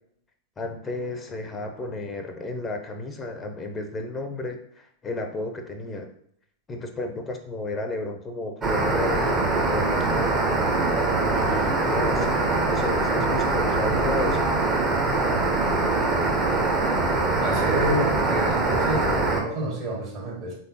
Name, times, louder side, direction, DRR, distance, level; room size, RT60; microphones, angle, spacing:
voice 1, 0.6-6.1 6.7-10.5 11.3-14.5, left 2 dB, 20° left, 5 dB, 0.6 m, -32 dB
sound 1, 8.6-19.4, right 3 dB, 25° right, 0.8 m, -23 dB
voice 2, 17.4-20.6, right 1 dB, 45° right, -4 dB, 1.7 m, -29 dB
3.8 x 3.4 x 2.8 m, 0.65 s
figure-of-eight pair, 90°, 0 cm